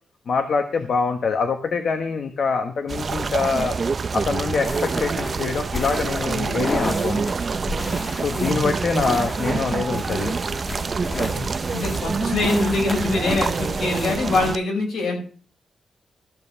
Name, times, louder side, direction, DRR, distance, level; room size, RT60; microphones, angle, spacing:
voice 1, 0.3-3.8 4.1-7.2 8.2-10.3, left 5 dB, 60° left, 6 dB, 1.1 m, -24 dB
sound 1, 2.9-14.6, right 5 dB, 45° right, 0.5 m, -26 dB
sound 2, 4.6-14.5, left 2 dB, 30° left, 1.4 m, -33 dB
voice 2, 8.4-8.7 11.1-15.2, left 3 dB, 80° left, 0 dB, 5.4 m, -24 dB
13.5 x 5.4 x 7.0 m, 0.43 s
cardioid pair, 95°, 0 cm